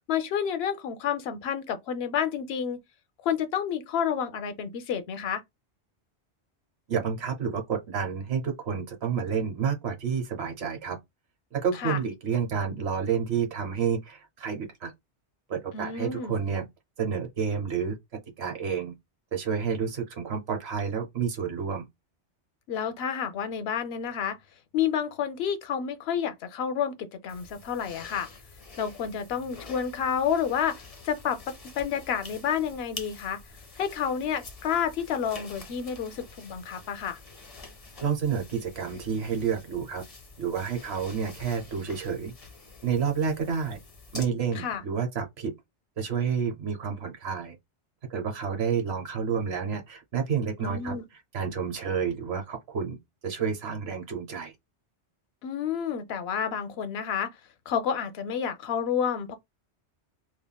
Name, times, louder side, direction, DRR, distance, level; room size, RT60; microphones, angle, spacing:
voice 1, 0.1-2.8 3.2-5.4 11.8-12.0 15.7-16.3 22.7-24.4 24.7-28.3 28.8-33.4 33.8-37.2 44.5-44.8 50.6-51.0 55.4-57.3 57.7-59.3, left 8 dB, 70° left, 0.8 m, -30 dB
voice 2, 6.9-11.0 11.5-14.9 15.5-16.6 17.0-18.0 18.4-18.9 19.3-21.9 38.0-40.0 40.4-42.3 42.8-43.8 44.1-45.5 46.0-47.6 48.1-50.9 51.3-53.0 53.2-54.5, right 6 dB, 70° right, 1.1 m, -29 dB
sound 1, 27.3-44.2, left 3 dB, 35° left, 0.7 m, -47 dB
3.4 x 2.3 x 2.2 m
omnidirectional pair, 1.1 m